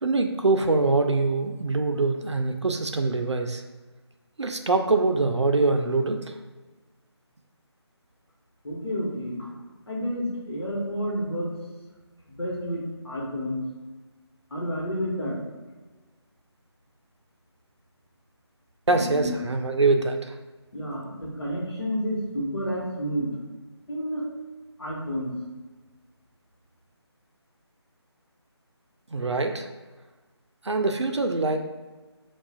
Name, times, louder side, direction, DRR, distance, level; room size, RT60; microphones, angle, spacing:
voice 1, 0.0-3.6 4.4-6.4 18.9-20.3 29.1-29.7 30.6-31.6, right 3 dB, 80° right, 5 dB, 0.5 m, -24 dB
voice 2, 8.6-9.5 9.9-11.5 12.3-13.6 14.5-15.4 18.9-19.4 20.7-23.3 23.9-24.2 24.8-25.3, equal, 65° left, -5 dB, 1.2 m, -30 dB
5.5 x 2.4 x 2.4 m, 1.3 s
figure-of-eight pair, 160°, 15 cm